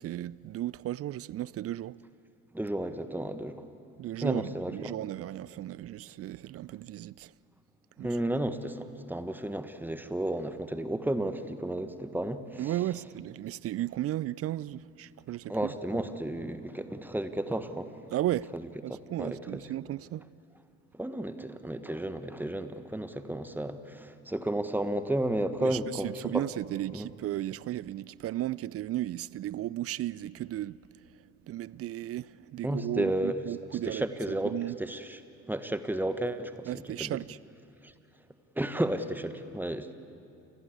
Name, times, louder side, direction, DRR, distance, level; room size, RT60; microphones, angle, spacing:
voice 1, 0.0-2.0 4.0-7.3 8.0-8.2 12.6-15.7 18.1-18.5 18.8-20.2 25.6-34.8 36.7-37.4, right 14 dB, 35° right, 0.5 m, -35 dB
voice 2, 2.5-3.6 4.2-4.9 8.0-12.7 15.5-18.0 18.5-18.6 18.9-19.6 20.9-26.4 26.9-27.1 32.6-33.4 33.9-35.2 35.5-37.2 37.8-37.9 38.5-39.9, right 1 dB, 5° right, 1.4 m, -33 dB
29.0 x 19.5 x 8.4 m
figure-of-eight pair, 55°, 42 cm